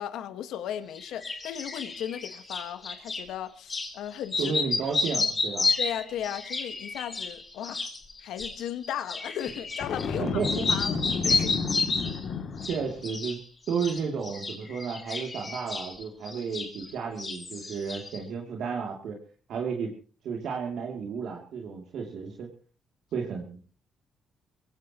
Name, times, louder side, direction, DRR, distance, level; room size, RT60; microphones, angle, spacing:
voice 1, 0.0-4.6 5.8-7.9 8.2-10.3 10.7-11.0 11.2-11.5, left 10 dB, 85° left, 11 dB, 1.6 m, -36 dB
sound 1, 0.9-3.2 3.7-3.9 4.2-10.1 10.4-12.2 12.6-13.4 13.7-16.9 17.2-18.2, left 3 dB, 30° left, 5.0 m, -31 dB
voice 2, 4.4-5.7 10.1-10.7 12.6-13.4 13.7-19.2 19.5-19.9 20.2-22.5 23.1-23.6, right 6 dB, 75° right, 1 dB, 2.9 m, -32 dB
Boom, 9.8-13.0, left 5 dB, 60° left, 2.6 m, -31 dB
23.5 x 17.5 x 3.0 m, 0.39 s
cardioid pair, 90°, 0 cm